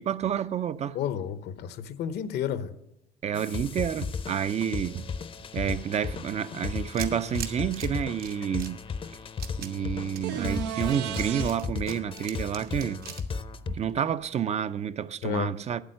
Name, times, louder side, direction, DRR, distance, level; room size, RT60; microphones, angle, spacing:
voice 1, 0.0-1.0 3.2-5.0 5.5-8.8 9.6-13.0 13.7-15.8, right 9 dB, 40° right, 0.5 m, -29 dB
voice 2, 0.9-2.7 15.2-15.5, left 9 dB, 75° left, 0.8 m, -31 dB
sound 1, 3.3-13.8, left 5 dB, 30° left, 0.6 m, -35 dB
sound 2, 6.9-14.4, right 7 dB, 65° right, 1.2 m, -43 dB
sound 3, 10.2-11.5 15.3-15.4, right 10 dB, 90° right, 0.7 m, -33 dB
9.1 x 8.2 x 7.6 m
cardioid pair, 110°, 17 cm